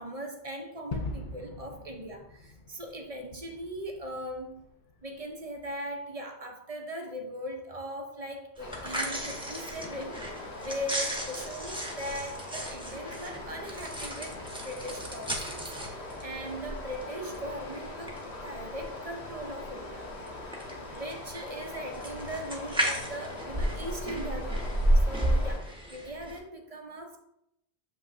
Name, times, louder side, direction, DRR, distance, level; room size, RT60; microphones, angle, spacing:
voice 1, 0.0-4.6 5.0-10.2 10.6-15.6 15.9-20.1 20.9-27.2, equal, 40° right, 0.7 m, -39 dB
Gunshot gunfire / Fireworks / Boom, 0.9-5.7, left 3 dB, 55° left, 0.7 m, -42 dB
Stream, 8.6-25.6, left 2 dB, 85° left, 1.5 m, -42 dB
sound 1, 8.6-26.4, right 1 dB, 5° right, 0.9 m, -33 dB
7.1 x 5.5 x 2.5 m
omnidirectional pair, 1.1 m